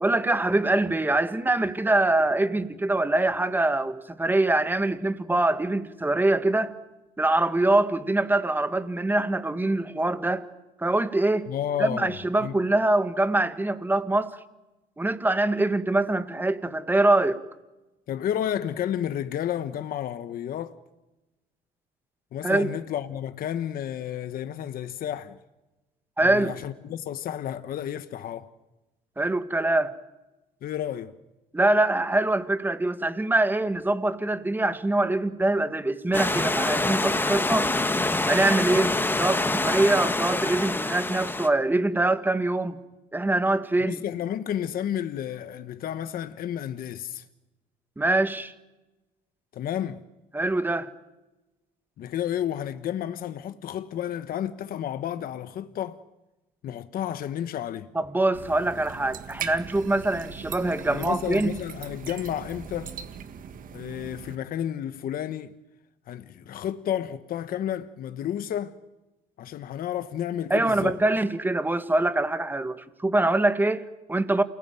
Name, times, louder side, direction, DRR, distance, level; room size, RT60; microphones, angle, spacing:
voice 1, 0.0-6.7 7.2-10.5 10.8-11.5 11.8-14.4 15.0-17.4 22.4-22.7 26.2-26.5 29.2-30.0 31.5-37.7 38.3-42.8 43.1-44.0 48.0-48.5 50.3-50.9 58.0-61.5 70.5-74.4, right 2 dB, 10° right, 1.8 m, -24 dB
voice 2, 11.5-12.5 18.1-20.8 22.3-25.4 26.2-28.5 30.6-31.1 43.8-47.2 49.5-50.0 52.0-56.0 56.6-57.9 60.9-62.9 63.7-65.6 66.1-68.8 69.4-71.0, left 10 dB, 60° left, 1.2 m, -31 dB
Stream / Liquid, 36.1-41.5, left 2 dB, 10° left, 1.5 m, -26 dB
sound 1, 58.3-64.4, right 8 dB, 55° right, 1.8 m, -40 dB
28.5 x 20.5 x 9.3 m
cardioid pair, 110°, 17 cm